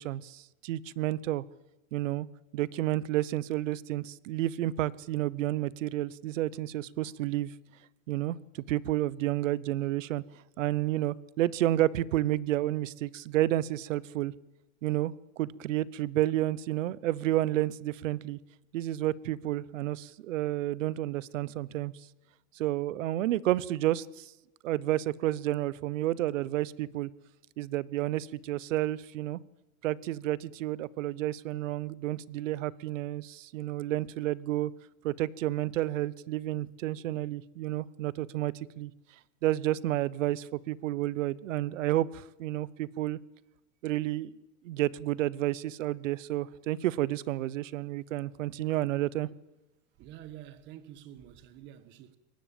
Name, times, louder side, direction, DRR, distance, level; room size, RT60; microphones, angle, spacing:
voice 1, 0.0-1.4 1.9-2.3 2.5-7.5 8.1-8.4 8.7-10.2 10.6-14.3 14.8-18.4 18.7-21.9 22.5-24.3 24.6-27.1 27.6-29.4 29.8-34.7 35.0-38.9 39.4-43.2 43.8-44.3 44.6-49.3, right 15 dB, 65° right, 1.0 m, -30 dB
voice 2, 50.0-52.2, right 11 dB, 25° right, 1.4 m, -48 dB
22.5 x 18.5 x 8.9 m
supercardioid pair, 170°, 41 cm